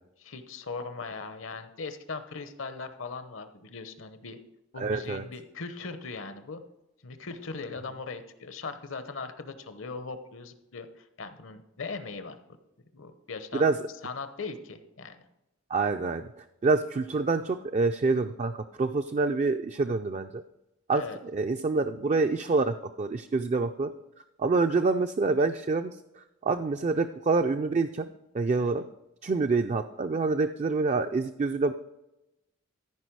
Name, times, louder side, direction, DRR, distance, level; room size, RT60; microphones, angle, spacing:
voice 1, 0.2-4.4 4.7-6.6 7.0-12.4 12.9-13.7 14.0-15.2 20.9-21.2 28.6-28.9, left 4 dB, 70° left, 10 dB, 0.9 m, -39 dB
voice 2, 4.8-5.2 13.5-13.8 15.7-16.2 16.6-18.5 18.8-20.4 20.9-21.0 21.3-23.9 24.4-25.9 26.4-28.1 28.3-28.8 29.2-31.7, right 3 dB, 35° right, 7 dB, 0.4 m, -26 dB
14.0 x 5.0 x 4.7 m, 0.93 s
head